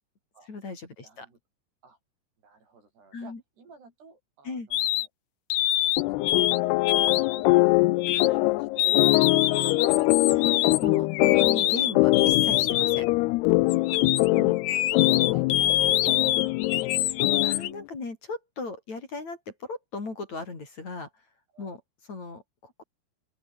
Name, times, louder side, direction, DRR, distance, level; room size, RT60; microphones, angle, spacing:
voice 1, 0.5-1.3 3.1-3.4 4.4-4.7 10.3-13.1 14.3-14.6 16.9-21.1 21.6-21.8 22.1-22.8, left 3 dB, 40° left, 6.2 m, -37 dB
voice 2, 1.0-1.4 1.8-2.0 2.4-5.1 5.8-6.7 7.3-10.7 13.9-14.0 14.6-16.5 16.8-16.9 21.5-21.7, right 4 dB, 65° right, 9.8 m, -52 dB
sound 1, 4.7-5.1 5.5-6.6 6.8-7.4 8.0-8.3 8.8-13.1 13.7-17.7, left 13 dB, 65° left, 2.8 m, -25 dB
sound 2, 6.0-17.7, left 21 dB, 80° left, 2.4 m, -23 dB
open air
omnidirectional pair, 5.2 m